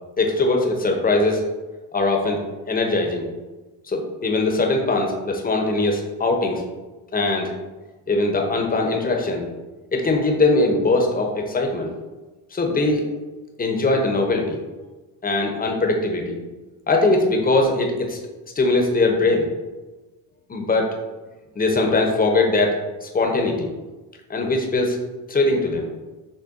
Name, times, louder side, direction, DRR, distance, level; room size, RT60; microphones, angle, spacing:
voice 1, 0.2-1.4 1.9-3.3 3.8-6.6 7.1-7.5 8.1-9.5 9.9-11.9 12.5-13.0 13.6-14.6 15.2-16.4 16.9-18.2 18.6-19.5 20.5-20.9 21.6-23.7 24.3-25.0 25.3-25.9, left 2 dB, 20° left, 2 dB, 0.6 m, -21 dB
6.5 x 2.2 x 2.4 m, 1.2 s
cardioid pair, 85°, 44 cm